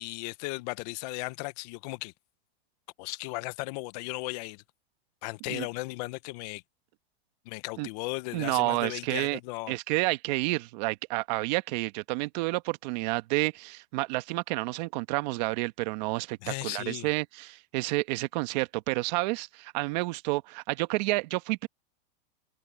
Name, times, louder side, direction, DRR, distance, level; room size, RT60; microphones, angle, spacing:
voice 1, 0.0-2.1 3.0-4.6 5.2-6.6 7.4-9.8 16.4-17.1, left 23 dB, 40° left, 0.9 m, -36 dB
voice 2, 8.3-9.4 9.7-21.7, right 22 dB, 45° right, 1.3 m, -30 dB
supercardioid pair, 150°, 30 cm